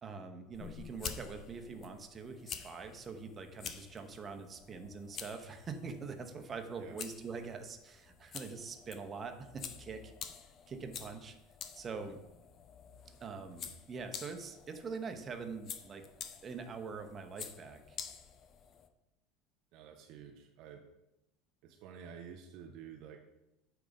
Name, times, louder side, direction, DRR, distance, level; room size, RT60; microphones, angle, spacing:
voice 1, 0.0-10.1 10.7-11.4 11.7-12.2 13.2-16.0 16.4-18.0, right 5 dB, 30° right, 6 dB, 1.0 m, -44 dB
sound 1, 0.5-18.9, left 7 dB, 40° left, 0.7 m, -49 dB
voice 2, 19.7-20.9 21.6-23.3, right 7 dB, 55° right, 4 dB, 0.7 m, -50 dB
8.5 x 3.6 x 5.2 m, 0.90 s
figure-of-eight pair, 75°, 0 cm